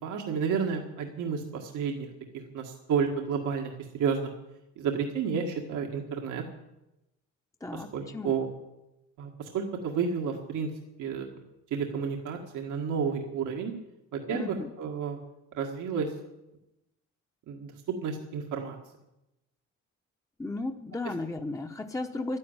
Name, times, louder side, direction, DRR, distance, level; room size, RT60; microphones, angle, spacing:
voice 1, 0.0-2.1 2.5-4.3 4.8-6.4 7.7-8.5 9.2-10.7 11.0-11.3 11.7-13.7 14.1-15.2 15.5-16.1 17.5-17.7 18.0-18.8, right 6 dB, 85° right, 1 dB, 1.8 m, -31 dB
voice 2, 7.6-8.3 14.3-14.7 20.4-22.4, left 2 dB, 10° left, 4 dB, 1.0 m, -35 dB
12.0 x 11.0 x 9.0 m, 0.92 s
cardioid pair, 90°, 30 cm